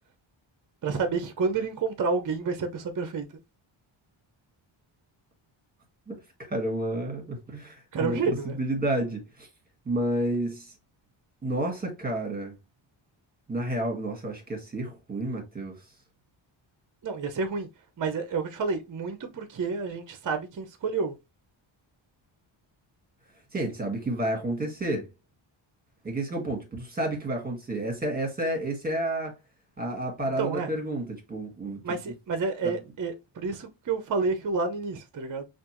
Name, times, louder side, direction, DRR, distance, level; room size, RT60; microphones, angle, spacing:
voice 1, 0.8-3.3 7.9-8.6 17.0-17.7 18.0-21.2 30.4-30.7 31.8-35.5, right 4 dB, 40° right, 0.7 m, -29 dB
voice 2, 6.1-8.2 8.5-9.5 9.9-10.7 11.4-12.6 13.5-15.8 23.5-25.0 26.0-29.3 29.8-32.0 32.6-32.7, right 1 dB, 20° right, 1.7 m, -30 dB
5.8 x 2.6 x 3.0 m
wide cardioid pair, 155°, 48 cm